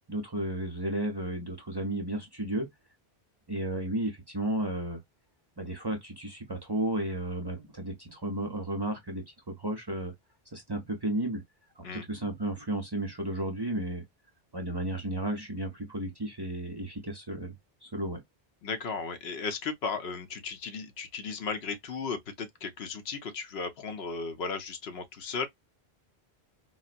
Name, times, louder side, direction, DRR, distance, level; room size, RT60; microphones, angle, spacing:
voice 1, 0.1-2.7 3.5-5.0 5.6-10.1 10.5-11.4 11.8-14.0 14.5-17.6 17.8-18.2, right 1 dB, 30° right, 0.5 m, -33 dB
voice 2, 18.6-25.5, left 5 dB, 75° left, 0.9 m, -35 dB
3.9 x 2.0 x 2.4 m
omnidirectional pair, 1.1 m